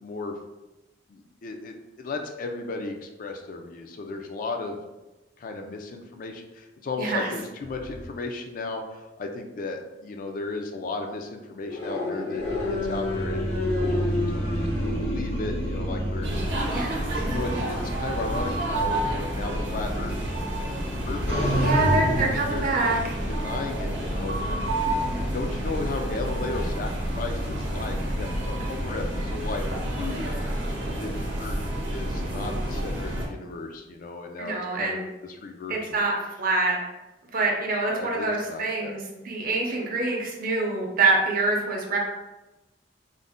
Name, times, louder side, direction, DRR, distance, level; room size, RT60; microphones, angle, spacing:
voice 1, 0.0-0.4 1.1-4.8 5.4-13.5 13.8-16.4 17.0-20.1 21.1-22.6 23.3-26.9 27.2-29.6 30.0-30.3 31.0-31.6 31.9-36.0 37.9-38.9, left 3 dB, 50° left, 4 dB, 0.3 m, -35 dB
voice 2, 7.0-7.3 16.7-17.0 21.5-23.1 34.4-35.1 35.7-36.8 37.3-42.0, right 3 dB, 50° right, 0 dB, 0.6 m, -26 dB
sound 1, 7.6-8.0 11.7-16.7 20.9-22.3, equal, 80° left, 1.1 m, -27 dB
sound 2, 16.2-33.3, right 1 dB, 90° right, 0.7 m, -29 dB
2.5 x 2.0 x 3.5 m, 1.0 s
head